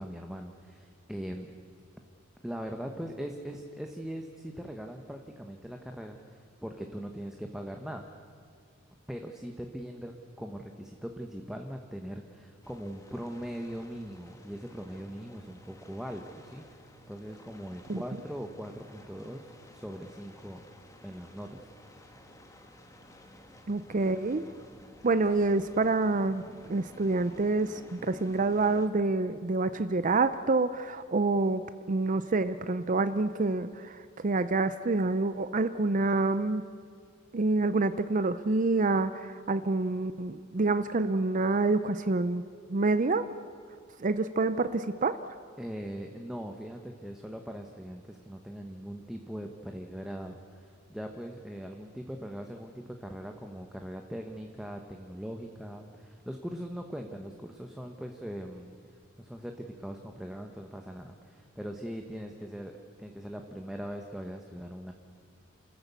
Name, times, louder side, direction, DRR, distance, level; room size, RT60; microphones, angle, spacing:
voice 1, 0.0-1.5 2.4-8.1 9.1-20.7 21.0-21.7 45.6-58.7 59.2-64.9, equal, ahead, 3 dB, 1.0 m, -41 dB
sound 1, 12.6-28.9, left 1 dB, 15° left, 1.5 m, -53 dB
voice 2, 23.7-24.4 25.0-26.4 26.7-36.6 37.3-42.4 42.7-43.2 44.0-45.2, right 3 dB, 40° right, 12 dB, 0.5 m, -27 dB
29.5 x 14.0 x 8.2 m, 2.1 s
head